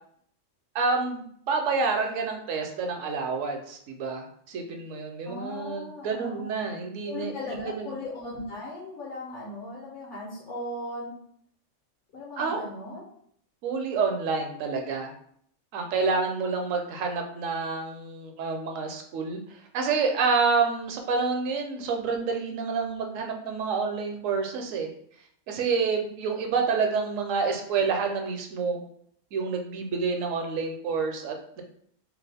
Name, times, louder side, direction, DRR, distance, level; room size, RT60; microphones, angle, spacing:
voice 1, 0.7-7.9 12.4-12.6 13.6-15.1 15.7-19.4 19.7-24.9 25.5-28.8 29.3-31.6, right 4 dB, 80° right, 4 dB, 1.0 m, -28 dB
voice 2, 5.2-6.5 7.0-11.1 12.1-13.1, left 1 dB, 65° left, -5 dB, 1.3 m, -37 dB
3.0 x 2.3 x 3.3 m, 0.66 s
omnidirectional pair, 1.3 m